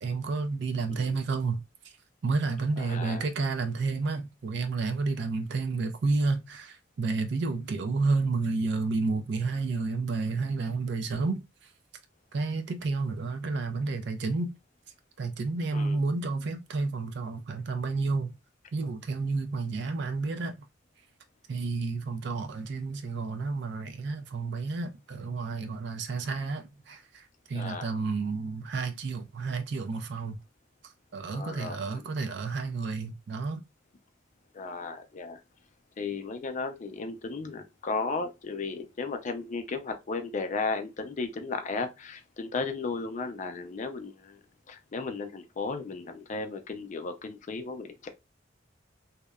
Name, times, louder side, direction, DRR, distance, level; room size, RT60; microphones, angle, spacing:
voice 1, 0.0-1.6 2.2-11.4 12.3-14.5 15.2-18.4 18.7-20.5 21.5-27.2 27.5-30.4 31.1-33.6, right 3 dB, 65° right, 0.4 m, -30 dB
voice 2, 2.8-3.2 15.7-16.0 27.5-28.0 31.3-32.0 34.5-35.4 36.0-44.4 44.7-48.1, left 4 dB, 40° left, 0.4 m, -35 dB
2.8 x 2.0 x 2.2 m
head